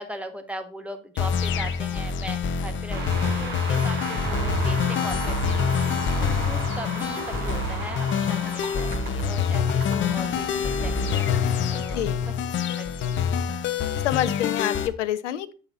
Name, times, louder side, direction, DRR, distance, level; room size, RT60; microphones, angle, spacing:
voice 1, 0.0-11.3 11.7-12.3 12.8-13.3, right 1 dB, 5° right, 6 dB, 1.4 m, -39 dB
sound 1, 1.2-14.9, left 6 dB, 30° left, 0.8 m, -26 dB
sound 2, 2.9-12.5, right 3 dB, 25° right, 3.8 m, -35 dB
voice 2, 14.0-15.5, left 12 dB, 65° left, 13 dB, 0.8 m, -27 dB
8.8 x 5.7 x 3.8 m, 0.36 s
figure-of-eight pair, 80°, 39 cm